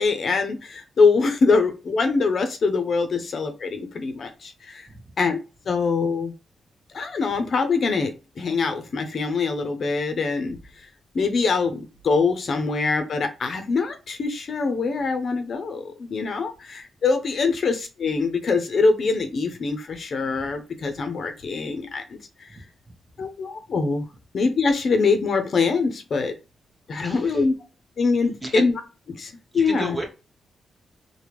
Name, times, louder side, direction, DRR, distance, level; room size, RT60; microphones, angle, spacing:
voice 1, 0.0-4.9 5.2-5.4 5.7-6.3 6.9-10.6 11.1-22.5 23.2-24.1 24.3-26.3 26.9-27.5 28.0-28.7 29.1-30.0, left 4 dB, 55° left, 7 dB, 0.5 m, -23 dB
voice 2, 27.0-27.4 28.4-28.6 29.5-30.1, right 2 dB, 15° right, 2 dB, 1.0 m, -32 dB
3.4 x 2.1 x 3.0 m, 0.31 s
cardioid pair, 100°, 0 cm